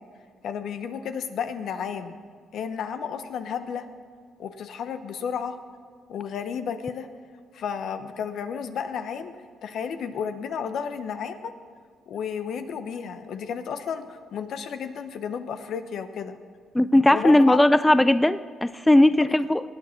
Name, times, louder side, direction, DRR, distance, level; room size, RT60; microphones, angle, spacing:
voice 1, 0.4-2.2 2.5-3.9 4.4-5.6 6.1-7.1 7.5-9.3 9.6-11.5 12.1-16.4 17.1-17.6 19.1-19.4, left 7 dB, 70° left, 10 dB, 0.9 m, -32 dB
voice 2, 16.7-19.6, left 1 dB, 10° left, 14 dB, 0.3 m, -18 dB
18.5 x 8.9 x 4.5 m, 2.1 s
cardioid pair, 90°, 0 cm